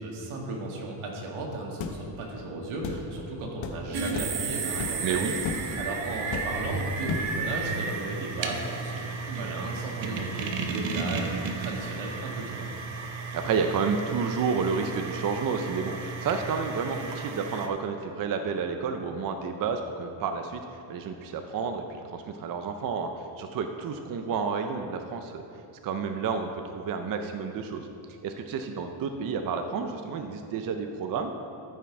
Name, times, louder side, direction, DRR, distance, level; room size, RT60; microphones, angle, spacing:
voice 1, 0.0-12.7, right 2 dB, 90° right, -1 dB, 2.1 m, -35 dB
sound 1, 1.8-2.0 2.8-3.0 3.6-3.8 4.1-4.4 4.8-5.1 5.4-5.7 6.3-6.7 7.1-7.4, left 6 dB, 70° left, 1.1 m, -33 dB
sound 2, 3.9-17.7, right 4 dB, 70° right, 1.0 m, -33 dB
voice 2, 5.0-5.3 13.3-20.6 20.9-21.8 22.1-25.4 25.8-27.9 28.2-31.3, right 5 dB, 45° right, 6 dB, 0.6 m, -30 dB
13.5 x 5.9 x 4.8 m, 2.7 s
cardioid pair, 160°, 48 cm